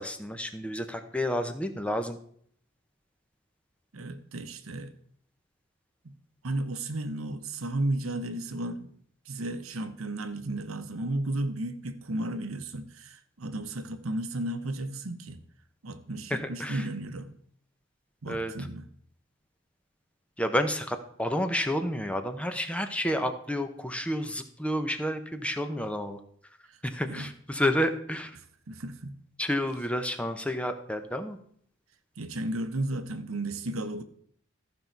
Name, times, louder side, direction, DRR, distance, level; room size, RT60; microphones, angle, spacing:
voice 1, 0.0-2.2 16.3-16.9 18.3-18.5 20.4-26.2 26.8-28.4 29.4-31.4, equal, 5° left, 0.7 m, -30 dB
voice 2, 3.9-4.9 6.0-6.2 6.4-8.9 9.3-15.4 15.8-17.3 18.2-18.9 26.7-26.8 27.0-27.3 28.7-29.2 32.2-34.0, right 1 dB, 85° right, 0.9 m, -34 dB
14.0 x 5.4 x 4.5 m
head